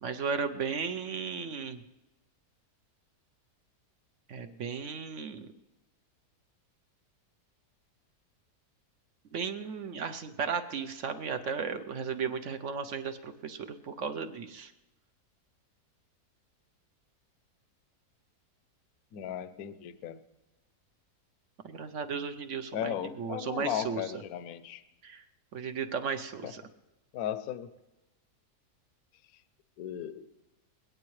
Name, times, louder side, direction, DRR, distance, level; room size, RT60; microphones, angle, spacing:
voice 1, 0.0-1.8 4.3-5.5 9.3-14.7 21.6-24.0 25.0-25.2 25.5-26.6, right 6 dB, 60° right, 8 dB, 0.9 m, -35 dB
voice 2, 19.1-20.2 22.7-24.8 26.4-26.5 27.1-27.7 29.8-30.3, left 10 dB, 70° left, 12 dB, 1.1 m, -36 dB
21.0 x 17.0 x 3.2 m, 1.0 s
omnidirectional pair, 1.7 m